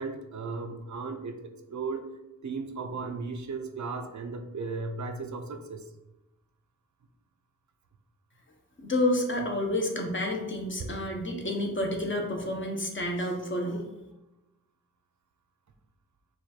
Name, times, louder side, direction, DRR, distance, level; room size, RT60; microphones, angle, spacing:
voice 1, 0.0-2.1 2.4-5.9 10.8-10.9, right 4 dB, 60° right, 6 dB, 0.6 m, -36 dB
voice 2, 8.8-13.8, left 1 dB, 35° left, 2 dB, 0.8 m, -29 dB
4.7 x 2.4 x 4.2 m, 0.96 s
wide cardioid pair, 70°, 32 cm